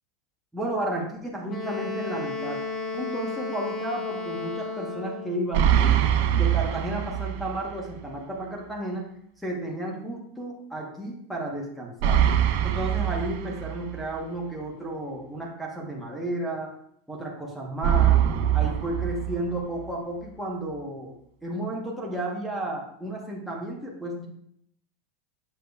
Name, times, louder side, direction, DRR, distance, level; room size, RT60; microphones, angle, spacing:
voice 1, 0.5-2.6 2.9-6.0 6.4-9.1 9.4-12.2 12.6-16.7 17.1-18.2 18.5-21.1 21.4-24.3, right 1 dB, ahead, -4 dB, 0.9 m, -32 dB
Wind instrument woodwind instrument, 1.5-5.4, left 3 dB, 15° left, 0.5 m, -33 dB
sound 1, 5.5-7.6 7.9-8.0 12.0-14.0 17.8-19.8, right 10 dB, 55° right, 0.6 m, -23 dB
7.3 x 6.6 x 2.2 m, 0.69 s
supercardioid pair, 165°, 0 cm